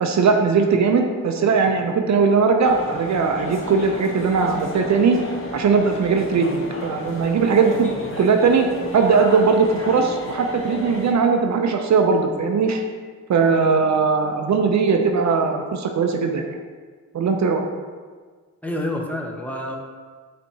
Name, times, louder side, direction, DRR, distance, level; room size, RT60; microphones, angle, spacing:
voice 1, 0.0-5.2 5.5-7.9 8.2-8.7 8.9-12.8 13.3-16.5 17.1-17.7, right 5 dB, 60° right, 4 dB, 0.5 m, -19 dB
sound 1, 2.6-11.1, left 2 dB, 40° left, 0.8 m, -33 dB
voice 2, 18.6-19.8, left 1 dB, 5° left, 0 dB, 0.7 m, -28 dB
5.3 x 3.4 x 2.8 m, 1.5 s
cardioid pair, 50°, 32 cm